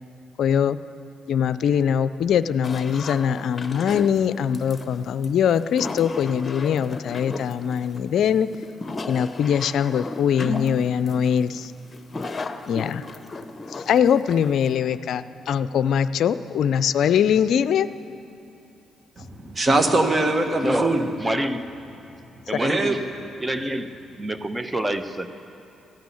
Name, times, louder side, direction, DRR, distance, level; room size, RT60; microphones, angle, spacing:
voice 1, 0.4-0.8 1.3-8.5 9.1-11.7 12.7-13.0 13.9-17.9, left 8 dB, 65° left, 15 dB, 0.4 m, -22 dB
sound 1, 2.6-14.8, left 2 dB, 35° left, 0.9 m, -35 dB
voice 2, 19.2-21.1 22.6-23.0, right 2 dB, 35° right, 5 dB, 1.8 m, -22 dB
voice 3, 20.6-21.8 22.5-23.1 23.4-25.3, right 1 dB, 20° right, 10 dB, 1.0 m, -27 dB
15.5 x 9.5 x 8.4 m, 2.8 s
hypercardioid pair, 45°, 0 cm